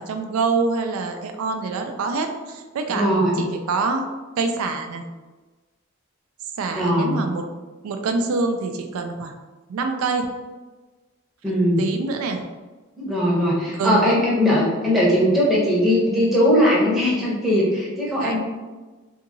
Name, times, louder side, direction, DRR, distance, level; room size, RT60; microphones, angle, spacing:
voice 1, 0.0-4.1 4.4-5.0 6.6-7.4 7.8-9.3 9.7-10.3 11.5-12.4 13.7-14.1 18.2-18.4, right 4 dB, 85° right, 5 dB, 0.3 m, -25 dB
voice 2, 2.9-3.4 6.7-7.2 11.4-11.8 13.0-18.4, equal, ahead, -7 dB, 0.7 m, -19 dB
2.7 x 2.6 x 2.6 m, 1.2 s
head